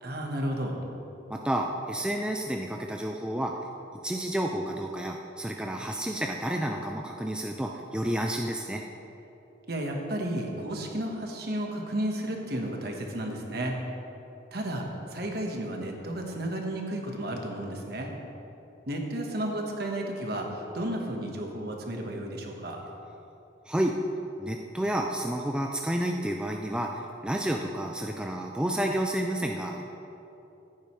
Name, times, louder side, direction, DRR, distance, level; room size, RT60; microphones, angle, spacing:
voice 1, 0.0-0.8 9.7-13.8 14.5-18.1 18.9-22.8, right 1 dB, 55° right, 1 dB, 1.4 m, -33 dB
voice 2, 1.3-3.5 4.0-8.8 23.7-23.9 24.4-29.8, right 1 dB, 5° right, 1 dB, 0.3 m, -30 dB
15.0 x 9.2 x 3.2 m, 2.9 s
head